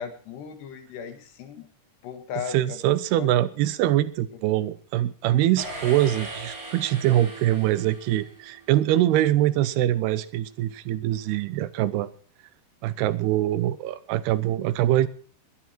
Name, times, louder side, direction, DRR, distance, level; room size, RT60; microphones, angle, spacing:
voice 1, 0.0-1.7 2.0-3.3, left 7 dB, 85° left, 4.0 m, -37 dB
voice 2, 2.5-12.1 12.8-15.1, right 13 dB, 80° right, 2.9 m, -23 dB
sound 1, 5.6-8.7, right 2 dB, 25° right, 5.7 m, -39 dB
20.0 x 10.5 x 4.5 m
omnidirectional pair, 4.6 m